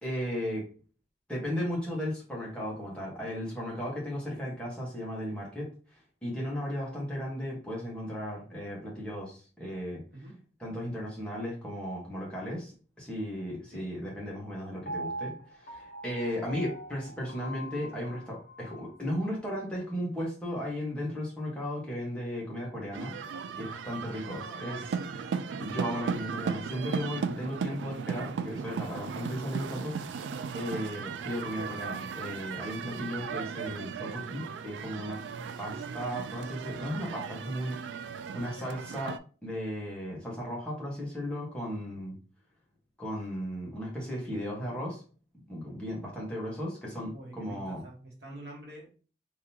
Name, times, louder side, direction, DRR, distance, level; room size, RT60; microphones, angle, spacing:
voice 1, 0.0-0.6 1.3-10.0 10.6-23.2 23.6-24.8 25.6-35.2 35.6-37.8 38.3-42.2 43.0-45.0 45.5-47.8, equal, 5° left, -4 dB, 1.3 m, -36 dB
Piano, 14.9-18.9 19.4-19.5, right 1 dB, 55° left, 0.9 m, -41 dB
sound 1, 22.9-39.2, right 6 dB, 80° right, 0.3 m, -36 dB
voice 2, 24.2-25.1 27.3-27.5 47.1-48.9, right 1 dB, 60° right, -1 dB, 1.3 m, -47 dB
3.6 x 2.9 x 2.8 m, 0.38 s
head